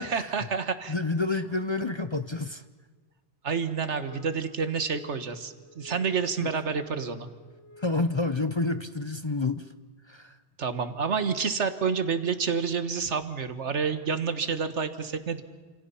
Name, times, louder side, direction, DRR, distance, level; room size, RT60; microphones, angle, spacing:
voice 1, 0.0-0.9 3.4-7.3 10.6-15.4, right 5 dB, 75° right, 10 dB, 1.7 m, -29 dB
voice 2, 0.9-2.6 6.4-6.5 7.8-9.7 10.1-10.4, left 3 dB, 30° left, 10 dB, 0.7 m, -29 dB
sound 1, 3.9-8.3, left 3 dB, 70° left, 7.2 m, -50 dB
29.5 x 27.0 x 5.7 m, 1.4 s
omnidirectional pair, 1.2 m